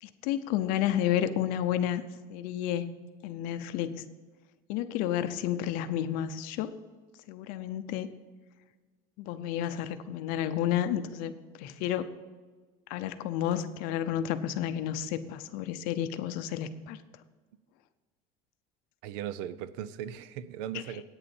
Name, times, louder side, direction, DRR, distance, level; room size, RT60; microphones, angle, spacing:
voice 1, 0.0-2.0 2.3-2.9 3.2-4.1 4.7-6.7 7.3-8.1 9.2-11.3 11.6-12.1 12.9-17.0, left 11 dB, 55° left, 12 dB, 0.7 m, -31 dB
voice 2, 19.0-21.0, right 10 dB, 70° right, 16 dB, 0.6 m, -38 dB
9.0 x 6.8 x 7.2 m, 1.4 s
cardioid pair, 180°, 17 cm